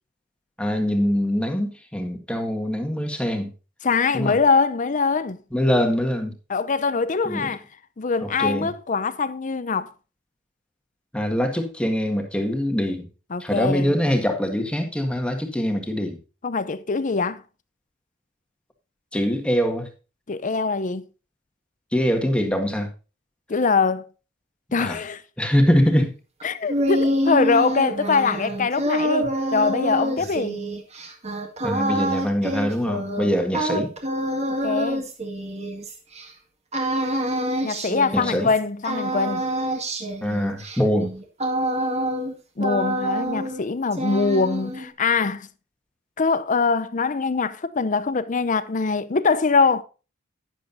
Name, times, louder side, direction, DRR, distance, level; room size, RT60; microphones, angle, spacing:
voice 1, 0.6-3.5 4.1-4.4 5.5-6.3 7.3-7.5 8.2-8.7 11.1-13.1 13.4-16.2 19.1-19.9 21.9-22.9 24.7-25.0 25.4-26.1 31.6-33.9 38.1-38.5 40.2-41.1, equal, 5° left, 1.7 m, -23 dB
voice 2, 3.8-5.4 6.5-7.6 8.0-9.9 13.3-14.0 16.4-17.4 20.3-21.0 23.5-24.1 24.7-25.2 26.4-30.6 34.6-35.0 37.6-39.5 42.6-45.5 46.2-49.8, left 4 dB, 40° left, 0.6 m, -23 dB
sound 1, 26.4-36.3 36.7-38.6 38.8-42.3 42.6-43.6 43.9-44.9, equal, 35° right, 1.9 m, -26 dB
11.5 x 10.0 x 2.7 m
head